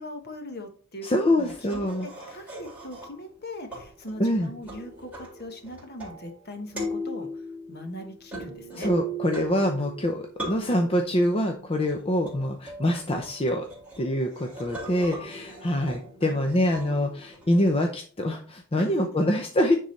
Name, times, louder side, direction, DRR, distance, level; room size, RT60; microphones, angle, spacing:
voice 1, 0.0-7.4 7.7-8.9 16.2-16.7 18.8-18.9, left 1 dB, 50° left, 5 dB, 1.3 m, -40 dB
voice 2, 1.0-2.1 4.2-4.5 8.8-13.6 14.0-19.8, left 1 dB, 25° left, 3 dB, 0.7 m, -25 dB
sound 1, 1.4-3.3 3.7-6.5 6.7-17.7, right 2 dB, 5° right, 3.1 m, -39 dB
9.5 x 3.8 x 4.2 m, 0.44 s
head